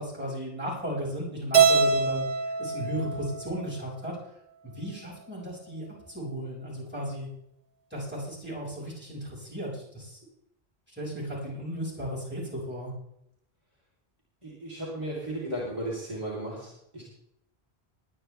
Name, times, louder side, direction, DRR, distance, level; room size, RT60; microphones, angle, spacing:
voice 1, 0.0-2.2 2.6-4.1 4.6-7.3 7.9-10.2 10.9-12.9, equal, 10° right, -7 dB, 6.4 m, -35 dB
Keyboard (musical), 1.5-3.9, right 5 dB, 65° right, 1.4 m, -24 dB
voice 2, 14.4-17.0, right 1 dB, 30° right, -7 dB, 3.9 m, -35 dB
22.5 x 9.9 x 3.5 m, 0.76 s
omnidirectional pair, 1.0 m